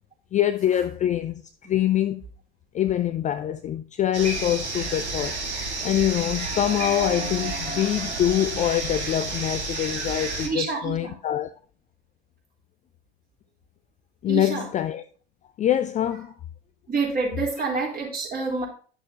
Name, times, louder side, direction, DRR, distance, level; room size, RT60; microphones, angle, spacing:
voice 1, 0.3-2.2 2.7-5.3 5.8-11.5 14.2-15.0 15.6-16.3, left 11 dB, 25° left, 0.4 m, -24 dB
sound 1, 4.1-10.5, right 3 dB, 85° right, 2.1 m, -30 dB
voice 2, 10.4-11.1 14.3-14.7 16.9-18.7, right 4 dB, 25° right, 4.0 m, -27 dB
11.0 x 6.6 x 2.9 m
figure-of-eight pair, 80°, 33 cm